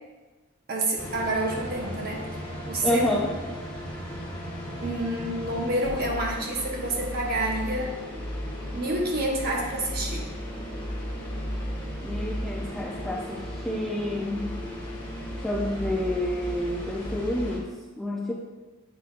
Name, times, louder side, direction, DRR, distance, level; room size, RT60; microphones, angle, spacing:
voice 1, 0.7-3.3 4.8-8.0 8.7-10.3, right 1 dB, 45° right, -1 dB, 1.1 m, -29 dB
sound 1, 1.0-17.6, equal, 20° left, 1.3 m, -35 dB
voice 2, 2.8-3.3 12.0-14.6 15.4-18.3, left 1 dB, ahead, -4 dB, 0.5 m, -29 dB
8.3 x 5.8 x 2.5 m, 1.2 s
head